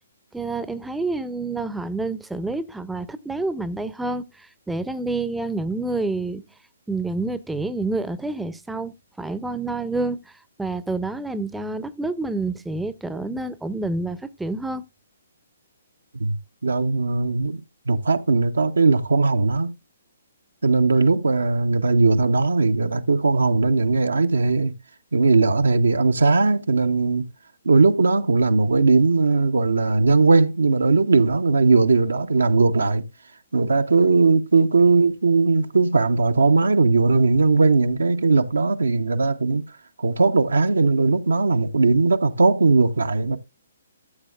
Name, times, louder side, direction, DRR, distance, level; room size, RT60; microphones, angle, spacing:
voice 1, 0.3-6.4 6.9-10.2 10.6-14.8, right 2 dB, 5° right, 0.6 m, -28 dB
voice 2, 16.6-17.6 17.9-19.7 20.6-24.7 25.1-27.3 27.6-33.0 33.5-39.6 40.0-43.4, right 3 dB, 70° right, 0.7 m, -19 dB
13.0 x 7.5 x 2.4 m
figure-of-eight pair, 130°, 0 cm